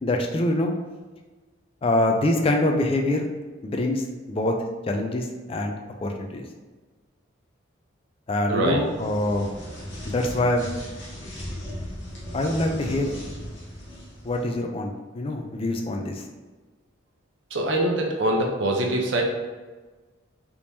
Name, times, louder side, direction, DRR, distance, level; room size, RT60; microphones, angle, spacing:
voice 1, 0.0-0.7 1.8-3.3 3.6-4.5 4.9-6.4 8.3-9.5 10.0-10.7 12.3-13.1 14.2-16.2, left 1 dB, 30° left, 3 dB, 0.3 m, -25 dB
voice 2, 8.5-8.8 17.5-19.2, right 1 dB, 65° right, 0 dB, 0.6 m, -23 dB
sound 1, 8.8-14.5, equal, 70° left, 1.1 m, -37 dB
3.5 x 3.0 x 2.6 m, 1.3 s
head